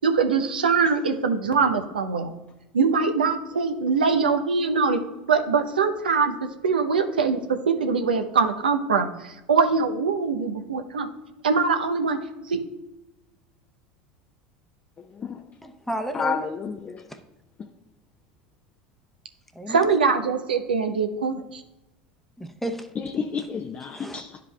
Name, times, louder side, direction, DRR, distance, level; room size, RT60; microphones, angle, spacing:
voice 1, 0.0-2.3 2.7-5.0 5.3-11.1 11.4-12.2 12.5-12.6 19.7-21.6, right 5 dB, 80° right, 0.7 m, -23 dB
voice 2, 15.6-16.5 19.5-19.9 22.4-22.9 23.9-24.2, right 1 dB, 5° left, 0.8 m, -32 dB
voice 3, 16.1-17.0 23.0-24.4, left 6 dB, 30° left, 0.6 m, -30 dB
12.0 x 5.0 x 2.3 m
figure-of-eight pair, 75°, 5 cm